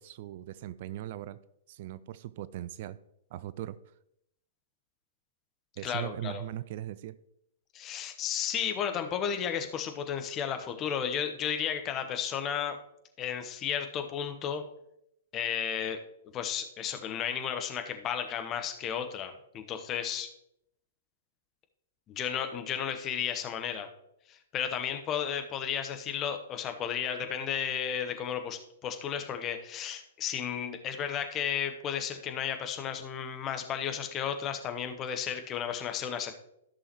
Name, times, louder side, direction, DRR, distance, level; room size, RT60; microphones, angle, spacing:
voice 1, 0.0-1.4 1.7-3.0 3.3-3.8 5.8-7.2, right 13 dB, 45° right, 16 dB, 0.3 m, -39 dB
voice 2, 5.8-6.4 7.7-12.8 13.2-14.6 15.3-16.0 16.3-20.3 22.1-23.9 24.3-36.3, left 8 dB, 25° left, 6 dB, 1.0 m, -33 dB
14.0 x 6.2 x 3.0 m, 0.80 s
figure-of-eight pair, 110°, 0 cm